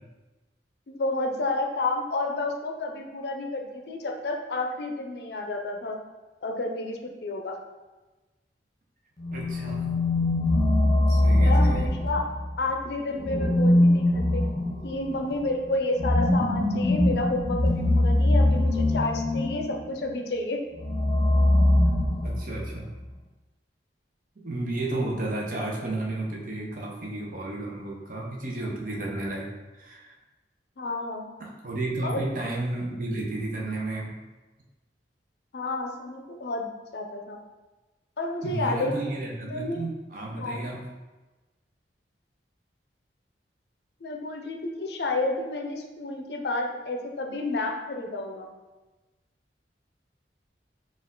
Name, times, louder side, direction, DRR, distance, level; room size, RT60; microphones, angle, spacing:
voice 1, 0.9-6.0 6.4-7.6 11.4-12.3 12.6-14.4 14.8-20.6 30.8-31.3 32.0-32.2 35.5-37.4 38.2-38.9 39.5-39.8 40.4-40.6 44.0-48.5, left 2 dB, 65° left, 3 dB, 0.5 m, -30 dB
sound 1, 9.2-12.5 13.2-19.8 20.8-22.7, left 1 dB, 25° left, 0.8 m, -22 dB
voice 2, 9.3-9.9 11.1-11.9 21.9-22.0 22.2-22.9 24.4-30.2 31.4-34.1 38.4-40.9, right 2 dB, 50° right, -1 dB, 0.7 m, -32 dB
4.4 x 2.4 x 3.7 m, 1.2 s
head